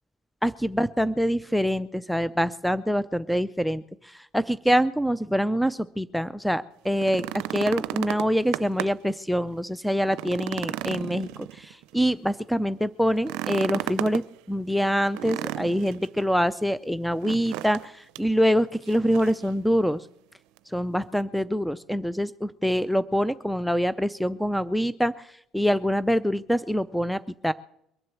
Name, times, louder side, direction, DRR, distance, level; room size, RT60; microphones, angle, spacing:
voice 1, 0.4-14.2 14.5-20.1 20.7-27.5, equal, ahead, 15 dB, 0.5 m, -25 dB
sound 1, 6.9-9.1 9.5-9.6 10.0-11.9 13.2-14.2 15.1-16.1 17.2-17.9 18.1-18.3 18.9-19.4 20.6-20.7, right 16 dB, 80° right, 0.5 m, -33 dB
22.5 x 7.6 x 7.0 m, 0.76 s
supercardioid pair, 95°, 0 cm